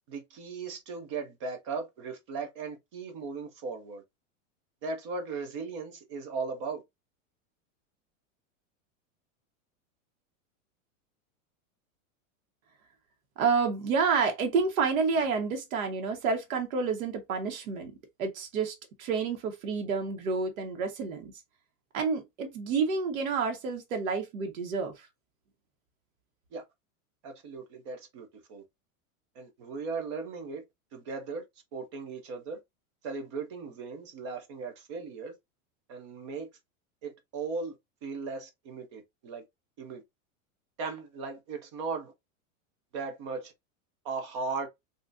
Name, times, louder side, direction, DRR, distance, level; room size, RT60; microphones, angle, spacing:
voice 1, 0.1-4.0 4.8-6.8 26.5-26.6 27.2-28.6 29.4-30.6 30.9-31.4 31.7-32.6 33.0-35.3 35.9-36.5 37.0-37.7 38.0-39.4 39.8-40.0 40.8-42.1 42.9-43.5 44.0-44.7, right 4 dB, 25° right, 0.3 m, -37 dB
voice 2, 13.4-17.9 18.2-21.3 21.9-25.1, right 5 dB, 80° right, 1.2 m, -29 dB
3.7 x 2.5 x 2.5 m
supercardioid pair, 170°, 41 cm